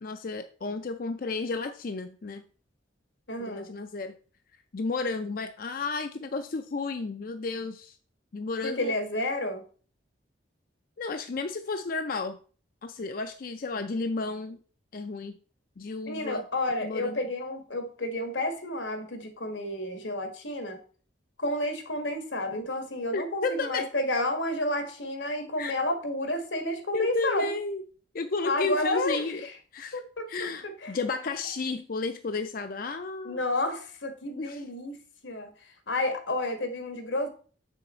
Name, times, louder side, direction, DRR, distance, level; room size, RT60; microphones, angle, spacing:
voice 1, 0.0-2.4 3.4-4.1 4.7-8.0 8.3-8.9 11.0-12.4 12.8-14.6 14.9-15.4 15.8-16.4 16.8-17.2 23.1-23.9 25.6-25.7 26.9-27.8 28.1-29.4 29.7-30.0 30.3-33.4 34.4-34.6, left 3 dB, 50° left, 8 dB, 0.4 m, -32 dB
voice 2, 3.3-3.7 8.6-9.6 16.1-20.8 21.4-27.5 28.4-29.3 29.9-30.3 30.8-30.9 33.2-35.0 35.2-35.5 35.9-37.3, left 1 dB, 85° left, 6 dB, 1.7 m, -30 dB
7.0 x 6.4 x 4.3 m, 0.41 s
head